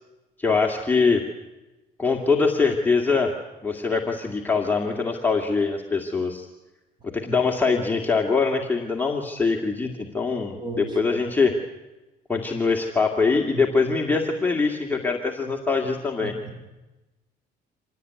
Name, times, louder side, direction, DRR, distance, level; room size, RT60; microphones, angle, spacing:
voice 1, 0.4-1.2 2.0-3.3 3.6-6.5 7.0-11.5 12.3-16.3, left 4 dB, 10° left, 0 dB, 2.1 m, -23 dB
voice 2, 10.6-11.2 16.2-16.6, right 1 dB, 25° right, 5 dB, 7.2 m, -35 dB
26.5 x 17.5 x 9.4 m, 1.1 s
cardioid pair, 110°, 17 cm